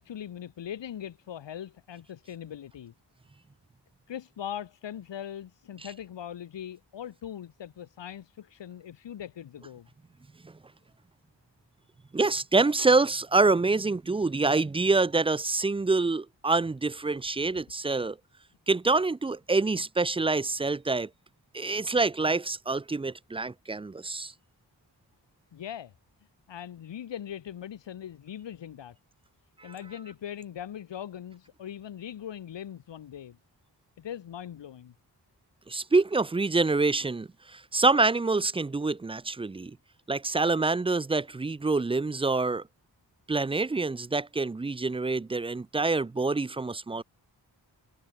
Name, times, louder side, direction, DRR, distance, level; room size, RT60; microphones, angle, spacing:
voice 1, 0.0-2.9 4.1-9.9 17.4-17.6 25.5-25.9 26.5-29.0 29.6-33.4 34.0-34.9, left 10 dB, 85° left, 1.1 m, -40 dB
voice 2, 12.1-18.2 18.7-21.1 21.5-24.3 29.6-29.7 35.7-39.8 40.1-42.6 43.3-47.0, right 3 dB, 15° right, 0.4 m, -26 dB
cardioid pair, 55°, 42 cm